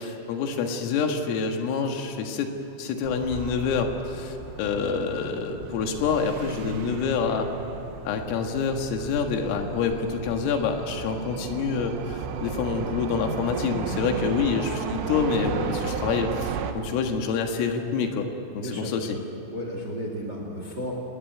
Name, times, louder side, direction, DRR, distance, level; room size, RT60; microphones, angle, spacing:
voice 1, 0.0-2.5 2.8-7.5 8.1-18.3 18.5-19.2, left 5 dB, 80° left, 4 dB, 4.3 m, -27 dB
sound 1, 3.0-16.7, right 7 dB, 70° right, 3.2 m, -34 dB
voice 2, 18.6-19.1 19.5-20.9, equal, 30° right, 1 dB, 2.2 m, -34 dB
28.0 x 19.0 x 9.2 m, 3.0 s
omnidirectional pair, 5.9 m